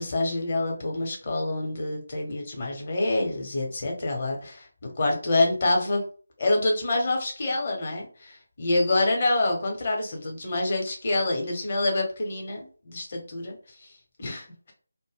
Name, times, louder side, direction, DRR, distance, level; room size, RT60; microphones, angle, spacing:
voice 1, 0.0-6.0 6.4-12.6 12.9-13.6 14.2-14.7, left 2 dB, 35° left, 0 dB, 0.8 m, -26 dB
2.1 x 2.1 x 3.4 m, 0.41 s
figure-of-eight pair, 160°, 0 cm